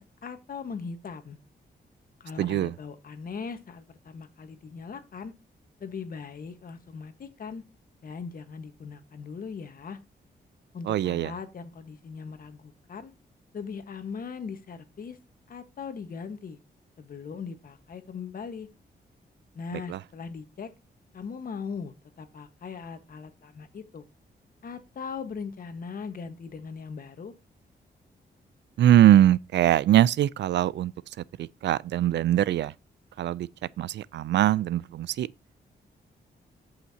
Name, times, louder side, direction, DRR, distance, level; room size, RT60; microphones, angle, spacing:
voice 1, 0.0-1.4 2.2-5.3 5.8-7.6 8.0-10.0 10.7-13.1 13.5-15.2 15.5-16.6 17.0-18.7 19.5-20.7 21.1-24.0 24.6-27.3, left 5 dB, 55° left, 1.4 m, -39 dB
voice 2, 2.4-2.7 10.9-11.3 19.9-20.0 28.8-30.9 31.4-32.7 33.2-33.5 33.8-35.3, right 12 dB, 90° right, 0.4 m, -22 dB
14.0 x 5.7 x 2.8 m
wide cardioid pair, 130°, 18 cm